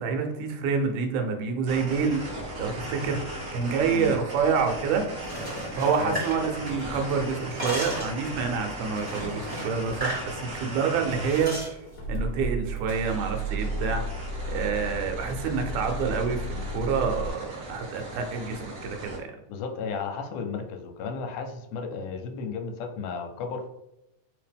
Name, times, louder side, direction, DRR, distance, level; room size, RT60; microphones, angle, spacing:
voice 1, 0.0-2.3 2.6-5.0 5.8-11.8 12.1-14.0 14.5-19.3, right 5 dB, 80° right, 4 dB, 2.1 m, -27 dB
sound 1, 1.7-11.5 12.9-19.2, right 1 dB, 55° right, 0.9 m, -38 dB
sound 2, 5.1-7.0 7.3-8.2 9.0-10.3 10.6-10.7 11.2-11.7, equal, 35° right, 0.5 m, -35 dB
Car / Engine starting / Idling, 6.8-7.5 7.7-8.5 9.2-9.3 9.5-9.6 9.9-10.1 11.1-17.3, right 1 dB, 60° left, 1.4 m, -34 dB
voice 2, 19.5-23.7, left 5 dB, 85° left, 4 dB, 2.1 m, -33 dB
4.6 x 2.8 x 3.4 m, 0.87 s
omnidirectional pair, 3.6 m